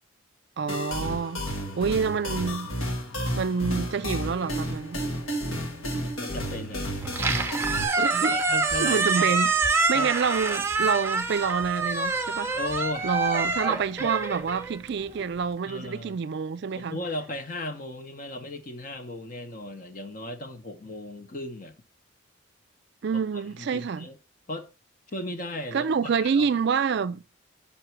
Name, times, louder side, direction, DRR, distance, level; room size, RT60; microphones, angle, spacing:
voice 1, 0.6-1.5 1.8-2.7 3.4-5.0 8.0-8.4 8.8-9.5 9.9-12.5 13.0-17.0 23.0-24.1 25.7-27.2, right 6 dB, 55° right, 0.4 m, -27 dB
sound 1, 0.7-7.8, equal, 85° left, 1.6 m, -31 dB
voice 2, 1.5-1.9 6.1-6.9 8.3-9.4 9.9-10.1 12.5-13.1 13.7-14.1 15.7-16.2 16.7-21.8 23.1-23.4 23.7-24.2 24.5-24.7 25.1-26.5, left 1 dB, 40° left, 0.9 m, -36 dB
Squeak, 7.0-15.3, right 3 dB, 10° right, 0.7 m, -26 dB
6.0 x 5.7 x 4.4 m
head